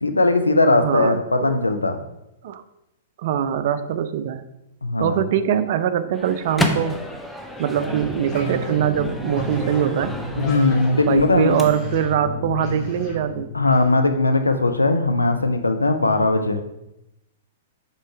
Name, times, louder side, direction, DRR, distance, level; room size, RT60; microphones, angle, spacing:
voice 1, 0.0-2.0 4.8-5.2 10.4-11.7 13.5-16.6, left 2 dB, 90° left, 6 dB, 0.5 m, -19 dB
voice 2, 0.8-1.6 2.4-2.6 3.2-4.4 5.0-7.0 7.6-10.1 11.0-13.5, right 9 dB, 55° right, 12 dB, 0.4 m, -22 dB
Microwave oven, 6.1-12.1, equal, ahead, 0.6 m, -31 dB
sound 1, 7.6-13.9, equal, 25° left, 1.4 m, -31 dB
5.5 x 3.8 x 4.5 m, 0.89 s
figure-of-eight pair, 105°, 0 cm